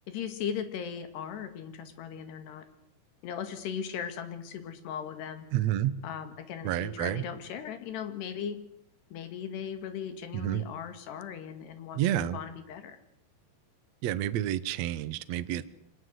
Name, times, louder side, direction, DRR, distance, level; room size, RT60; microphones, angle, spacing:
voice 1, 0.1-2.7 3.2-5.5 6.0-8.6 9.1-13.0, left 8 dB, 85° left, 9 dB, 4.2 m, -38 dB
voice 2, 5.5-5.9 6.6-7.3 10.3-10.6 11.9-12.4 14.0-15.6, right 12 dB, 80° right, 13 dB, 1.5 m, -29 dB
25.0 x 19.0 x 8.1 m, 0.79 s
omnidirectional pair, 4.6 m